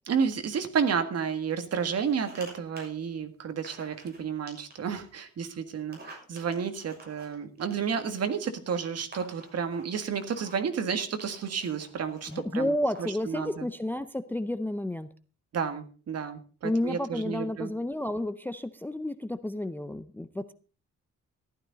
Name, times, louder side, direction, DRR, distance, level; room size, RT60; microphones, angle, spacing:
voice 1, 0.1-13.7 15.5-17.7, right 6 dB, 55° right, 8 dB, 1.8 m, -31 dB
sound 1, 1.8-2.5 2.8-2.9 3.6-4.2 4.5-5.1 5.8-8.2 8.8-8.9 9.1-10.7 11.2-12.4 12.9-13.2, right 2 dB, 30° right, 6.6 m, -50 dB
voice 2, 12.3-15.1 16.6-20.5, left 1 dB, 5° left, 12 dB, 0.5 m, -31 dB
14.5 x 12.0 x 4.0 m, 0.38 s
cardioid pair, 140°, 30 cm